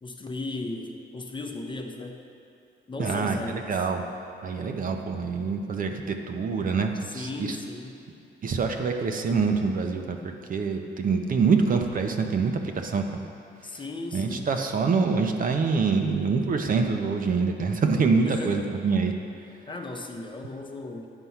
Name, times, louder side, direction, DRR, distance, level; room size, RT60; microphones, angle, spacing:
voice 1, 0.0-2.2 2.9-3.8 7.0-8.0 13.6-14.5 18.2-18.7 19.7-21.1, left 2 dB, 25° left, 3 dB, 0.8 m, -36 dB
voice 2, 3.0-4.0 4.4-7.6 8.4-10.2 10.5-13.2 14.1-19.1, right 4 dB, 45° right, 4 dB, 0.7 m, -25 dB
9.7 x 4.5 x 5.6 m, 2.5 s
cardioid pair, 90°, 20 cm